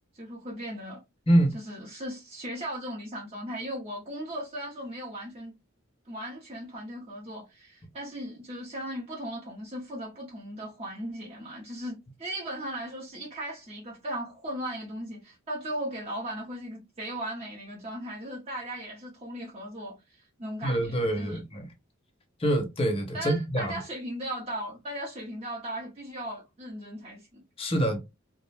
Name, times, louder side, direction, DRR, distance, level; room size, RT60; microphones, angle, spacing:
voice 1, 0.1-1.0 1.7-5.5 6.1-21.4 23.1-27.4, right 1 dB, 30° right, 0.8 m, -37 dB
voice 2, 20.6-21.7 22.4-23.8 27.6-28.0, right 1 dB, 30° left, 0.7 m, -25 dB
2.4 x 2.2 x 3.2 m
head